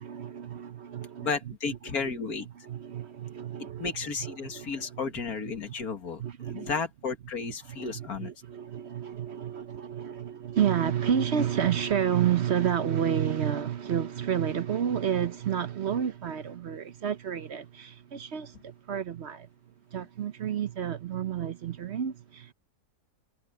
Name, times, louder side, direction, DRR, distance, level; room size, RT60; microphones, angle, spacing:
voice 1, 0.0-1.3 2.6-3.9 4.2-5.0 6.2-6.7 7.4-19.5 19.9-22.5, right 9 dB, 55° right, 0.8 m, -30 dB
voice 2, 1.2-2.5 3.8-8.3, left 5 dB, 65° left, 2.4 m, -33 dB
omnidirectional pair, 1.7 m